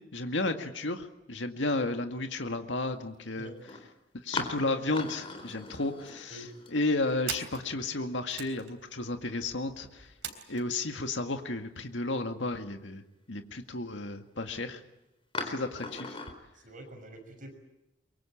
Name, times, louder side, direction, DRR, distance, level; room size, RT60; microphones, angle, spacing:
voice 1, 0.1-3.5 4.2-6.4 6.7-10.1 10.5-13.0 13.3-14.8 15.4-16.2, left 2 dB, 75° left, 6 dB, 2.0 m, -33 dB
sound 1, 2.8-2.9 3.6-3.8 4.3-7.2 7.5-7.6 9.0-9.7 10.2-10.3 10.9-11.0 15.3-16.3, left 3 dB, 30° left, 4.1 m, -39 dB
sound 2, 4.5-4.7 5.0-5.1 5.4-6.0 6.6-10.7, right 8 dB, 85° right, 3.6 m, -43 dB
voice 2, 16.6-17.5, right 1 dB, 45° right, 5 dB, 6.0 m, -47 dB
23.5 x 23.5 x 8.7 m, 0.91 s
head